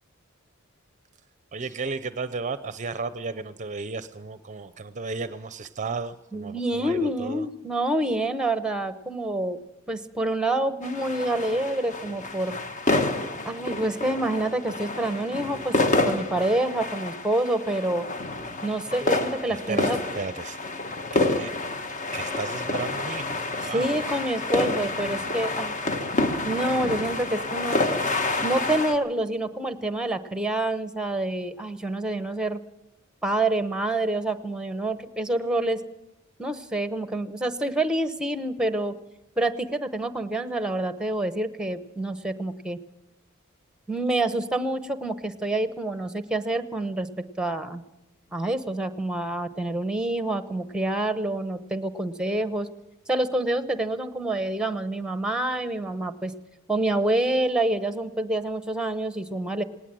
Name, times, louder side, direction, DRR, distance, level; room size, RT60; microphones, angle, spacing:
voice 1, 1.5-7.5 19.5-20.6 21.4-21.5 22.1-23.9 24.2-24.5, right 4 dB, 35° right, 13 dB, 0.6 m, -34 dB
voice 2, 6.3-9.6 9.9-12.6 13.4-15.8 16.0-18.1 18.6-20.0 23.7-25.8 26.4-27.8 28.4-32.6 33.2-35.8 36.4-38.9 39.4-42.8 43.9-47.1 47.4-47.8 48.3-52.7 53.1-56.3 56.7-59.6, right 1 dB, 5° right, 11 dB, 1.0 m, -27 dB
sound 1, 10.8-28.9, left 2 dB, 35° left, 1.4 m, -28 dB
18.5 x 18.5 x 7.7 m, 0.91 s
head